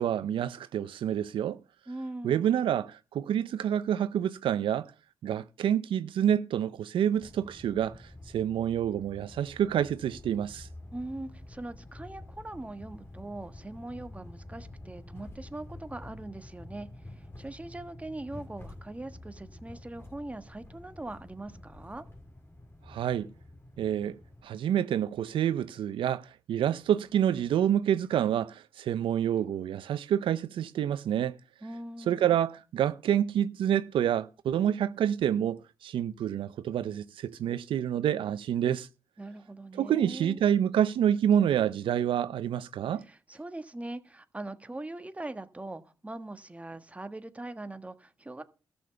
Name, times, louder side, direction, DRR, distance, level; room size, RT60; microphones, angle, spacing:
voice 1, 0.0-1.6 2.2-4.9 5.2-10.7 22.9-23.3 23.8-24.2 24.4-31.4 32.1-38.9 39.7-43.0, right 10 dB, 80° right, 0.6 m, -28 dB
voice 2, 1.9-2.6 10.9-22.0 31.6-32.4 39.2-40.4 43.0-48.4, right 2 dB, 15° right, 1.4 m, -41 dB
sound 1, 7.2-24.4, left 1 dB, 30° left, 3.5 m, -48 dB
13.5 x 7.0 x 6.9 m
cardioid pair, 70°, 9 cm